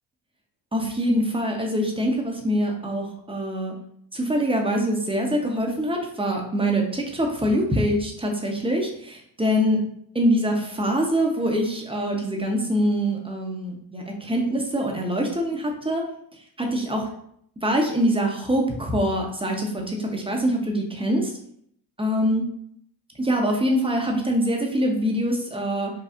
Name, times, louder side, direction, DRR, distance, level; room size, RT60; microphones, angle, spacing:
voice 1, 0.7-3.7 4.1-9.8 10.1-16.0 16.6-17.1 17.6-21.3 22.0-22.4 23.2-25.9, equal, 10° right, 0 dB, 0.8 m, -24 dB
4.3 x 2.3 x 2.5 m, 0.68 s
supercardioid pair, 50°, 50 cm